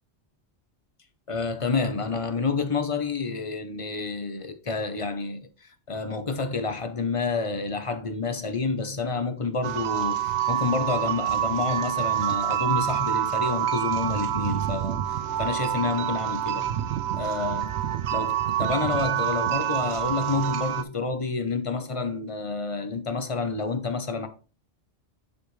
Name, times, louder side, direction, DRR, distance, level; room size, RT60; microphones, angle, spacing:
voice 1, 1.3-16.8 17.1-17.7 18.1-24.3, left 4 dB, 30° left, 0.8 m, -29 dB
sound 1, 9.6-20.8, right 11 dB, 75° right, 0.8 m, -27 dB
9.8 x 4.4 x 3.2 m
omnidirectional pair, 1.2 m